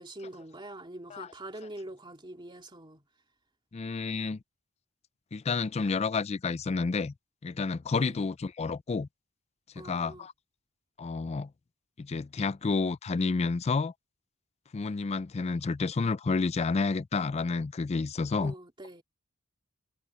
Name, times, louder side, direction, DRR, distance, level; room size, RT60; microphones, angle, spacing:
voice 1, 0.0-3.0 7.9-8.3 9.8-10.3 18.4-19.0, right 1 dB, 20° right, 2.6 m, -44 dB
voice 2, 3.7-4.4 5.3-7.1 7.4-9.1 9.8-10.3 11.0-11.5 12.0-13.9 14.7-18.5, left 4 dB, 30° left, 0.4 m, -30 dB
head